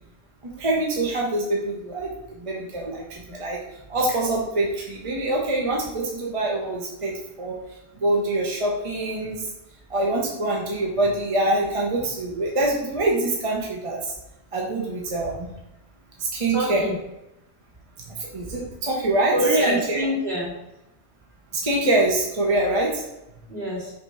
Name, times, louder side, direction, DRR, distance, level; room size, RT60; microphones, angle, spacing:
voice 1, 0.4-3.6 3.9-7.6 7.9-9.5 9.9-14.1 14.5-15.5 16.2-16.8 18.1-19.3 19.7-20.0 21.5-23.0, right 2 dB, 30° right, -3 dB, 1.0 m, -25 dB
voice 2, 16.5-17.0 19.3-20.5 23.5-23.9, equal, 65° right, -6 dB, 2.8 m, -24 dB
5.6 x 3.4 x 5.6 m, 0.90 s
omnidirectional pair, 1.1 m